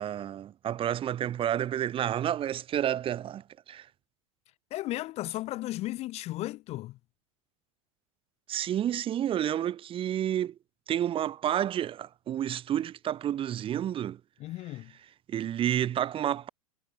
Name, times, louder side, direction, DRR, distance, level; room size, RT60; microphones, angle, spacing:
voice 1, 0.0-3.9 8.5-10.5 10.9-14.2 15.3-16.5, right 11 dB, 30° right, 1.3 m, -30 dB
voice 2, 4.7-7.0 14.4-14.9, left 17 dB, 40° left, 0.6 m, -35 dB
hypercardioid pair, 95°, 17 cm